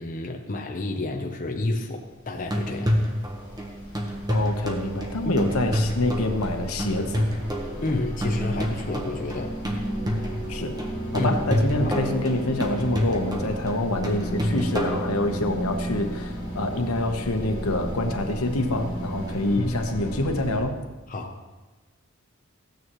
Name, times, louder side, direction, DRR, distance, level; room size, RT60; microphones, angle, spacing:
voice 1, 0.0-2.9 5.2-5.3 7.8-9.6 11.2-11.4 11.8-11.9 19.6-19.7 21.1-21.4, left 2 dB, 40° left, 1 dB, 0.8 m, -30 dB
sound 1, 2.1-20.6, equal, 20° left, 2.3 m, -34 dB
sound 2, 2.4-15.7 19.3-19.4, equal, 20° right, 1.2 m, -29 dB
voice 2, 4.3-7.3 10.5-10.8 11.1-20.8, left 1 dB, 90° left, 5 dB, 1.1 m, -26 dB
15.5 x 9.4 x 3.1 m, 1.3 s
head